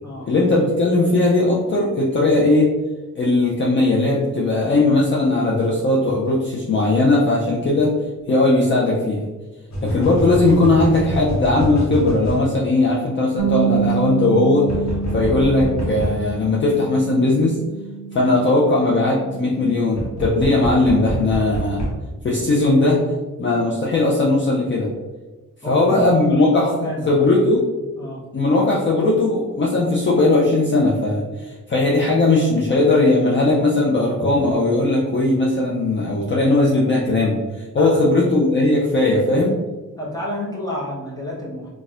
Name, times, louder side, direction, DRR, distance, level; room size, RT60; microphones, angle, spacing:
voice 1, 0.3-2.7 3.2-7.9 8.3-9.3 9.8-14.7 15.1-17.5 18.1-21.8 22.2-23.0 23.4-24.9 25.7-26.7 27.1-27.6 28.3-39.6, left 2 dB, 35° left, -5 dB, 0.5 m, -18 dB
sound 1, 7.8-7.9 9.7-12.5 14.7-16.2 19.9-22.0, equal, 60° left, 1.0 m, -26 dB
Bass guitar, 13.4-19.6, right 6 dB, 70° right, 0.5 m, -27 dB
voice 2, 25.6-26.2 26.6-27.1 27.9-28.2 37.8-38.0 39.9-41.7, left 1 dB, 10° left, -5 dB, 0.8 m, -30 dB
4.1 x 2.2 x 2.4 m, 1.2 s
wide cardioid pair, 165°, 32 cm